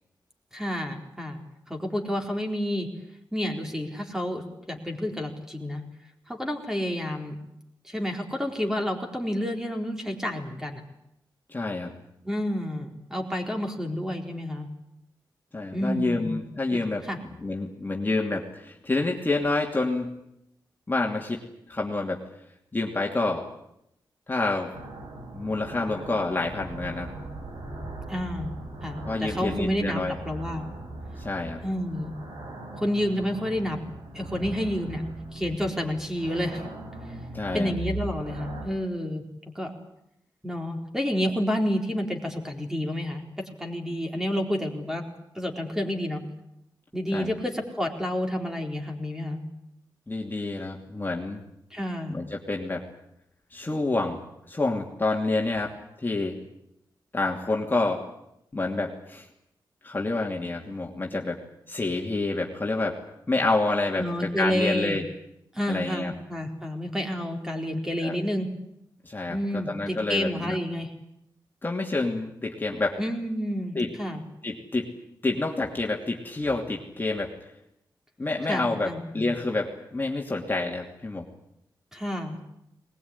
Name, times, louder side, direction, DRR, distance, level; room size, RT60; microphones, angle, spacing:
voice 1, 0.5-1.4 1.7-2.9 3.3-5.8 6.3-7.4 7.8-10.8 12.2-14.7 15.7-16.4 16.7-17.2 28.1-28.5 28.8-30.7 31.6-32.1 32.8-33.8 34.1-35.0 35.3-36.6 37.5-39.2 39.5-39.7 40.4-45.0 45.3-46.2 46.9-49.4 51.7-52.2 64.0-65.0 65.5-68.5 69.3-70.9 73.0-74.2 78.5-79.3 81.9-82.4, equal, 5° right, 2 dB, 4.2 m, -29 dB
voice 2, 11.5-11.9 15.5-17.0 17.4-20.1 20.9-21.4 21.7-22.2 22.7-23.5 24.3-24.7 25.3-27.1 29.1-30.2 31.2-31.6 37.3-37.7 47.1-47.3 50.1-51.4 52.1-52.8 53.5-54.2 54.5-56.4 57.1-58.0 58.5-59.3 59.8-61.4 61.7-63.0 63.3-65.0 65.7-66.1 68.0-68.2 69.0-70.6 71.6-73.0 73.7-73.9 74.4-74.9 75.2-77.3 78.2-81.3, left 2 dB, 25° left, 0 dB, 2.8 m, -28 dB
sound 1, 24.7-38.7, right 2 dB, 80° right, 6.3 m, -39 dB
21.0 x 20.5 x 9.8 m, 0.80 s
wide cardioid pair, 105°, 8 cm